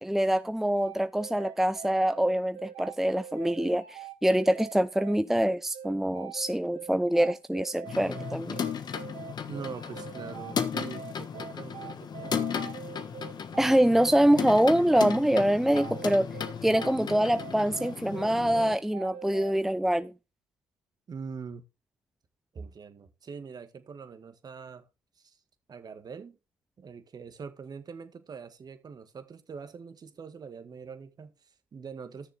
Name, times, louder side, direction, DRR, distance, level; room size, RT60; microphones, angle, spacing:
voice 1, 0.0-8.6 13.6-16.3 16.6-20.1, right 1 dB, 5° right, 0.5 m, -25 dB
sound 1, 0.7-19.6, right 9 dB, 75° right, 1.2 m, -43 dB
sound 2, 7.9-18.8, left 7 dB, 50° left, 1.4 m, -35 dB
voice 2, 9.5-12.4 21.1-21.6 22.5-24.9 25.2-25.4 25.7-26.4 26.8-32.3, right 5 dB, 45° right, 1.7 m, -43 dB
13.0 x 6.8 x 3.5 m
hypercardioid pair, 60°, 9 cm